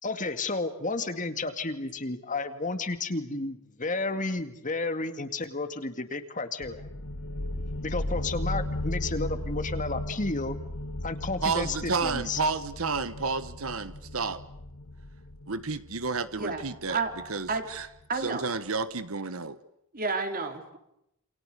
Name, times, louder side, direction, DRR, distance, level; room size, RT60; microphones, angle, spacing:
voice 1, 0.0-6.9 7.8-10.6 11.0-11.8 12.0-12.4, left 3 dB, 35° left, 2.2 m, -32 dB
sound 1, 6.6-18.0, left 1 dB, 60° left, 1.5 m, -36 dB
voice 2, 11.4-14.4 15.5-17.9 18.1-19.6, right 4 dB, 70° right, 1.3 m, -31 dB
voice 3, 18.1-18.4 19.9-20.8, right 4 dB, 40° right, 3.7 m, -30 dB
28.5 x 27.5 x 6.8 m
head